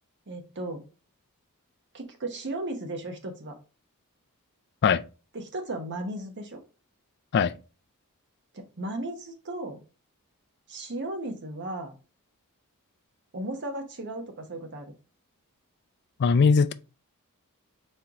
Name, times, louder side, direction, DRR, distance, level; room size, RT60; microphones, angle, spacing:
voice 1, 0.3-0.8 1.9-3.6 5.3-6.6 8.5-9.8 10.7-11.9 13.3-14.9, right 1 dB, 55° right, 0.9 m, -35 dB
voice 2, 16.2-16.7, left 5 dB, 50° left, 0.4 m, -20 dB
4.3 x 3.8 x 2.9 m
head